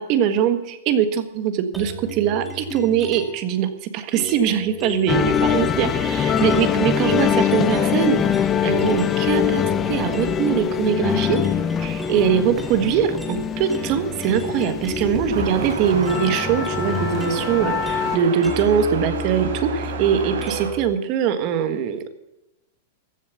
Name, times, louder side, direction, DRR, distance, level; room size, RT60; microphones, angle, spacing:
voice 1, 0.0-11.4 11.8-22.1, right 8 dB, 35° right, 9 dB, 1.5 m, -22 dB
sound 1, 1.7-3.5 4.1-9.2 9.5-20.9, left 2 dB, 5° right, 1.9 m, -33 dB
sound 2, 5.1-18.2, left 8 dB, 20° left, 0.8 m, -23 dB
sound 3, 15.3-20.7, right 4 dB, 85° right, 4.7 m, -31 dB
15.0 x 7.4 x 8.2 m, 0.91 s
supercardioid pair, 160°, 0 cm